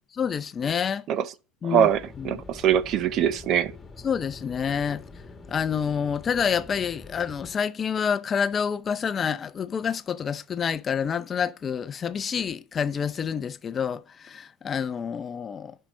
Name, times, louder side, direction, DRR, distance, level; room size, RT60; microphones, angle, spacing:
voice 1, 0.2-1.0 1.6-1.9 2.2-2.4 4.0-5.0 5.5-15.7, left 7 dB, 25° left, 0.5 m, -28 dB
voice 2, 1.6-3.7, right 10 dB, 45° right, 0.6 m, -23 dB
sound 1, 1.8-7.6, left 4 dB, 10° left, 1.8 m, -45 dB
10.0 x 5.6 x 3.6 m
supercardioid pair, 135°, 0 cm